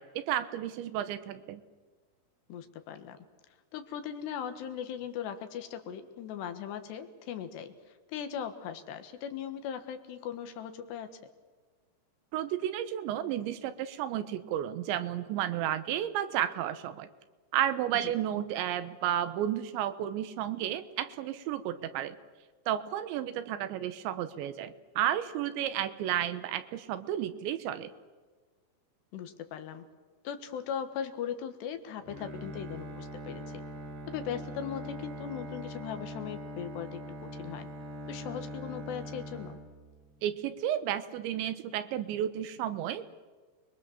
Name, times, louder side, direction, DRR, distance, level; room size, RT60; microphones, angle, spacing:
voice 1, 0.0-1.6 12.3-17.1 17.5-22.2 22.7-27.9 40.2-43.1, right 11 dB, 85° right, 12 dB, 3.4 m, -32 dB
voice 2, 2.5-3.2 3.7-7.7 8.1-11.2 18.0-18.1 29.1-29.9 30.3-33.4 34.1-37.7 38.1-39.6, left 8 dB, 75° left, 8 dB, 3.5 m, -39 dB
Bowed string instrument, 32.0-40.3, equal, 65° right, 4.8 m, -42 dB
29.0 x 22.0 x 7.2 m, 1.4 s
omnidirectional pair, 5.1 m